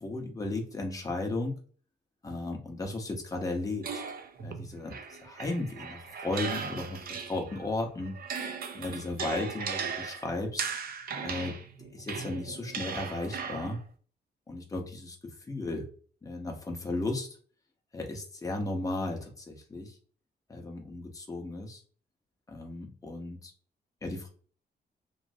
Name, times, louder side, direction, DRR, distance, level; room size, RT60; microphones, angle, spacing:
voice 1, 0.0-1.6 2.2-4.0 4.4-7.0 7.2-8.2 8.7-10.6 11.2-11.5 11.9-13.8 14.5-15.2 15.5-15.8 16.2-17.3 17.9-19.9 20.5-21.8 22.5-23.5 24.0-24.3, left 2 dB, 20° left, 2 dB, 0.7 m, -35 dB
sound 1, 3.8-7.7 8.0-13.8, right 6 dB, 60° right, 0.5 m, -38 dB
3.1 x 2.5 x 2.6 m, 0.42 s
wide cardioid pair, 145°, 18 cm